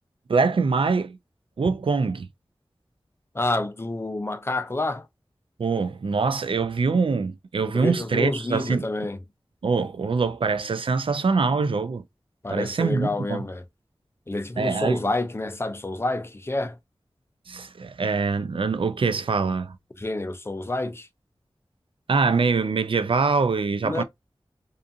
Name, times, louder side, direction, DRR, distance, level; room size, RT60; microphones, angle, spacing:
voice 1, 0.3-1.2 1.6-2.3 5.6-8.8 9.6-12.0 12.5-13.4 14.6-15.0 17.5-19.8 22.1-24.0, right 4 dB, 65° right, 0.4 m, -24 dB
voice 2, 3.3-5.1 7.7-9.2 12.4-13.6 14.3-16.8 20.0-21.1 23.8-24.0, left 2 dB, 25° left, 0.4 m, -28 dB
2.5 x 2.4 x 2.6 m
cardioid pair, 40°, 10 cm